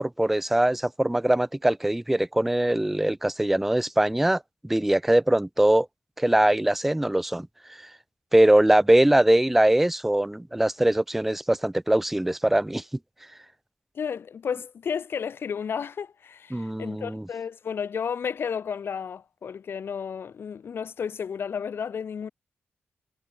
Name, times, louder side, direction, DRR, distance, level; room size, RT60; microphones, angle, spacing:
voice 1, 0.0-5.9 6.2-7.5 8.3-12.8 16.5-17.2, right 1 dB, 5° right, 0.3 m, -22 dB
voice 2, 13.9-22.3, left 7 dB, 70° left, 5.9 m, -32 dB
wide cardioid pair, 155°, 4 cm